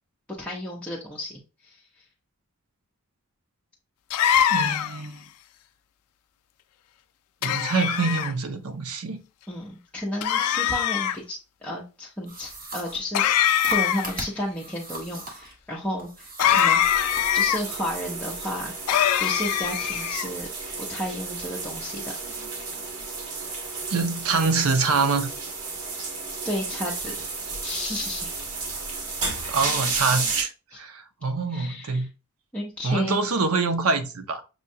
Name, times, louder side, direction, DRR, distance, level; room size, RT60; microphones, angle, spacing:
voice 1, 0.4-1.8 9.5-16.8 17.3-18.7 19.2-20.5 20.8-22.1 26.4-27.2 27.6-28.3 30.7-30.8 31.5-32.1 32.5-33.2, left 1 dB, 5° left, 0.7 m, -32 dB
sound 1, 4.1-5.1 7.4-8.3 10.2-11.2 13.1-14.2 16.4-17.6 18.9-20.3, left 10 dB, 90° left, 0.4 m, -23 dB
voice 2, 4.5-5.2 7.4-9.2 23.9-25.3 29.5-30.5 30.8-32.1 32.8-34.4, right 4 dB, 65° right, 0.7 m, -25 dB
sound 2, 12.3-15.6 16.0-17.3, right 2 dB, 40° right, 1.1 m, -38 dB
sound 3, 16.8-30.4, right 4 dB, 85° right, 1.2 m, -33 dB
6.2 x 2.3 x 2.7 m
head